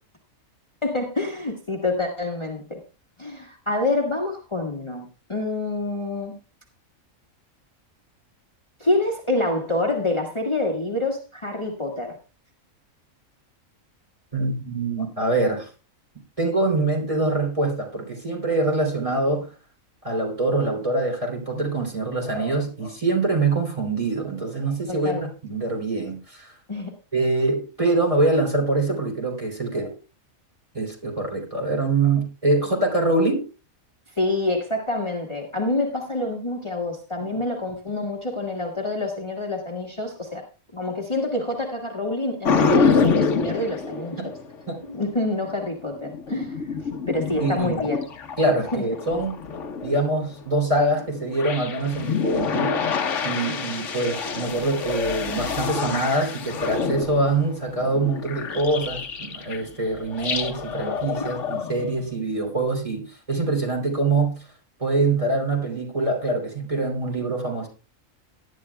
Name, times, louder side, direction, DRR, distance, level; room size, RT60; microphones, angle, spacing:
voice 1, 0.8-2.8 3.2-6.4 8.8-12.2 24.9-25.3 26.7-26.9 34.2-40.4 40.7-44.3 44.8-46.6 47.1-48.0 48.7-48.8 53.5-53.6 61.1-61.3, left 2 dB, 20° left, 0 dB, 1.6 m, -27 dB
voice 2, 14.3-15.7 16.4-19.5 20.0-26.5 27.1-29.9 30.7-33.4 44.2-44.3 44.7-44.8 47.4-47.9 48.4-49.3 49.8-52.8 53.2-64.4 64.8-67.7, right 2 dB, 25° right, 0 dB, 3.1 m, -24 dB
sound 1, 42.4-45.0 45.5-50.5 51.0-59.7 59.9-62.1, left 5 dB, 65° left, 1.3 m, -27 dB
18.5 x 11.0 x 2.3 m, 0.34 s
omnidirectional pair, 1.4 m